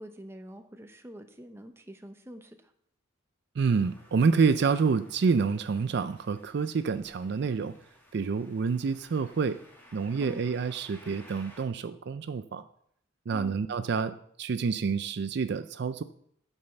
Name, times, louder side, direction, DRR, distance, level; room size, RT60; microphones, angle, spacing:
voice 1, 0.0-2.7 10.2-10.4 13.3-13.6, equal, 10° right, 6 dB, 0.7 m, -46 dB
sound 1, 3.6-11.6, equal, 10° left, 1.8 m, -56 dB
voice 2, 3.6-7.7 8.1-9.6 9.9-12.6 13.3-16.0, right 5 dB, 55° right, 12 dB, 0.4 m, -28 dB
9.5 x 5.4 x 7.1 m, 0.68 s
head